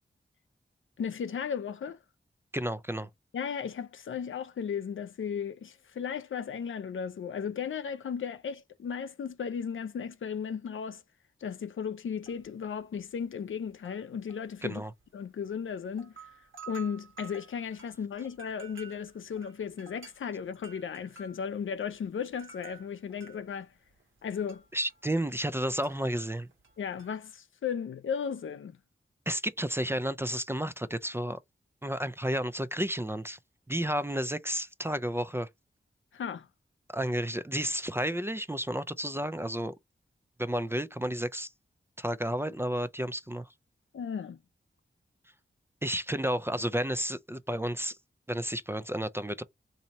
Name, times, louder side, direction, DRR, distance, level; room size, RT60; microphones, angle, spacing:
voice 1, 1.0-2.0 3.3-11.0 11.4-14.8 15.1-16.1 16.7-23.7 24.2-24.6 26.8-28.8 36.1-36.5 43.9-44.4, left 7 dB, 75° left, 0.5 m, -35 dB
voice 2, 2.5-3.1 14.6-14.9 24.7-26.5 29.3-31.4 31.8-33.4 33.7-35.5 36.9-39.7 40.4-41.5 42.0-43.5 45.8-48.0 48.3-49.4, equal, 10° right, 0.3 m, -31 dB
sound 1, 12.3-12.6 13.0-13.1 13.7-15.1 15.6-15.7 15.9-25.6 25.8-27.1, right 6 dB, 75° right, 1.2 m, -52 dB
2.9 x 2.7 x 4.0 m
cardioid pair, 50°, 20 cm